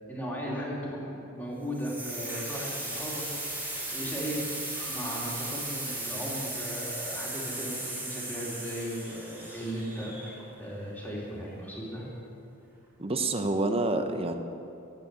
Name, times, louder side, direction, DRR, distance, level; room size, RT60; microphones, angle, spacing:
voice 1, 0.1-3.5 3.9-4.5 4.9-12.1, equal, 10° left, -5 dB, 2.8 m, -36 dB
sound 1, 1.7-10.6, right 1 dB, 10° right, 3.3 m, -36 dB
voice 2, 13.0-14.4, right 2 dB, 25° right, 7 dB, 0.8 m, -28 dB
12.5 x 8.6 x 8.1 m, 2.7 s
head